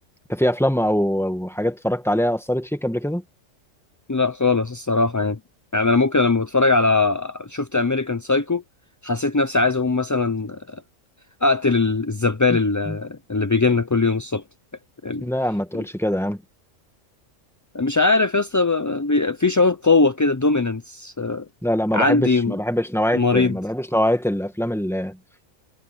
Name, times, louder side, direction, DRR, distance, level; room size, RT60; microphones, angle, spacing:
voice 1, 0.3-3.2 12.5-12.6 12.9-13.0 15.2-16.4 21.6-25.2, equal, ahead, 1.6 m, -23 dB
voice 2, 4.1-5.4 5.7-8.6 9.0-10.8 11.4-14.4 15.0-15.3 17.7-21.5 21.9-22.6 23.1-23.5, left 3 dB, 20° left, 0.5 m, -20 dB
omnidirectional pair, 1.3 m